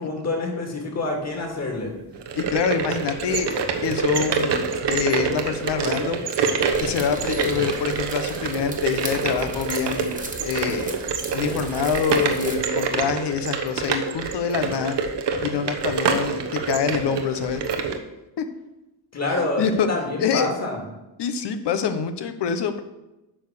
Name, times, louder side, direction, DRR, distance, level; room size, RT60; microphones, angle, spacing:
voice 1, 0.0-1.9 19.1-20.8, left 2 dB, 35° left, 0 dB, 2.8 m, -27 dB
sound 1, 2.1-18.0, right 5 dB, 70° right, 1.2 m, -26 dB
voice 2, 2.3-6.2 6.8-10.2 10.4-10.9 11.3-15.0 15.4-17.6 18.4-18.5 19.3-19.9 20.2-20.5 21.2-22.8, left 7 dB, 65° left, 9 dB, 1.1 m, -26 dB
sound 2, 6.7-12.6, right 2 dB, 15° right, 1.5 m, -38 dB
8.9 x 4.9 x 6.7 m, 0.96 s
cardioid pair, 105°, 44 cm